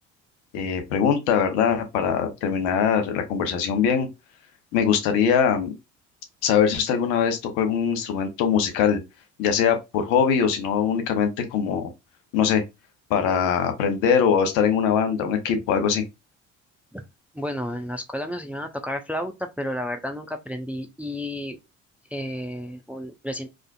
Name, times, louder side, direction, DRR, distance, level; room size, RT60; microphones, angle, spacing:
voice 1, 0.5-4.1 4.7-5.7 6.4-9.0 9.4-11.9 12.3-12.6 13.1-16.0, left 7 dB, 75° left, 0.8 m, -22 dB
voice 2, 17.3-21.6 22.1-23.5, equal, 5° right, 0.3 m, -31 dB
2.4 x 2.4 x 2.3 m
hypercardioid pair, 55°, 37 cm